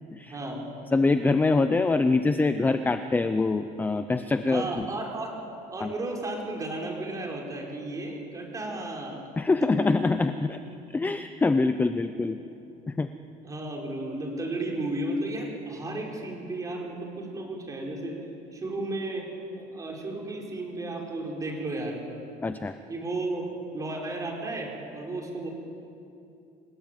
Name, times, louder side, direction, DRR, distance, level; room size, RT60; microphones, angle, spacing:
voice 1, 0.3-0.7 4.5-5.4 5.7-9.2 9.8-9.9 13.4-18.1 18.5-19.3 19.6-22.0 22.9-23.5 23.7-25.5, right 2 dB, 20° right, 0 dB, 4.8 m, -33 dB
voice 2, 0.9-4.8 5.8-5.9 9.4-10.6 10.9-12.4 12.9-13.1 22.4-22.8, left 3 dB, 10° left, 10 dB, 0.6 m, -24 dB
28.5 x 19.0 x 9.2 m, 2.7 s
cardioid pair, 165°, 18 cm